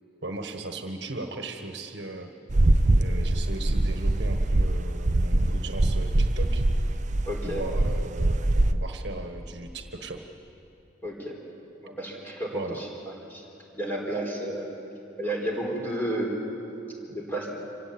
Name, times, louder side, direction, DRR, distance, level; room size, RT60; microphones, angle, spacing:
voice 1, 0.2-2.3 3.0-6.6 7.4-10.2 12.5-12.8, right 2 dB, 60° right, 5 dB, 1.5 m, -37 dB
sound 1, 2.5-8.7, right 1 dB, 40° right, 0.7 m, -23 dB
voice 2, 7.3-7.7 11.0-11.4 11.8-13.4 13.7-14.7 15.2-16.3 17.1-17.5, right 1 dB, 10° left, -1 dB, 4.3 m, -32 dB
26.0 x 17.5 x 8.7 m, 2.9 s
head